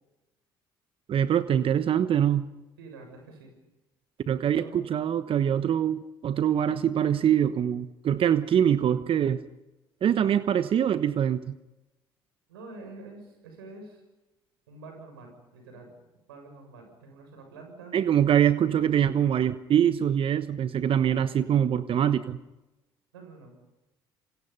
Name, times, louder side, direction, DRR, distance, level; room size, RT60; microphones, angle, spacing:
voice 1, 1.1-2.5 4.3-9.4 10.0-11.6 17.9-22.4, right 9 dB, 50° right, 12 dB, 1.1 m, -24 dB
voice 2, 2.8-3.5 4.6-4.8 12.5-14.0 14.7-15.9 16.3-18.0 23.1-23.6, right 3 dB, 85° right, 4 dB, 7.1 m, -46 dB
29.0 x 27.5 x 5.6 m, 1.0 s
hypercardioid pair, 55°, 12 cm